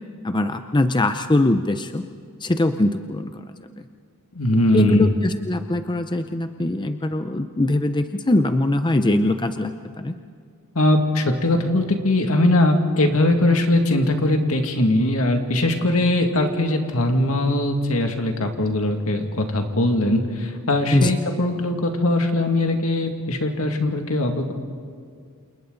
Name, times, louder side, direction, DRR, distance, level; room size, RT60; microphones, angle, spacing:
voice 1, 0.2-2.0 2.4-3.4 4.7-10.1 20.9-21.1, left 1 dB, 20° left, 8 dB, 0.6 m, -21 dB
voice 2, 4.3-5.1 10.8-24.5, left 1 dB, 70° left, 4 dB, 2.2 m, -20 dB
29.0 x 28.0 x 4.0 m, 2.1 s
head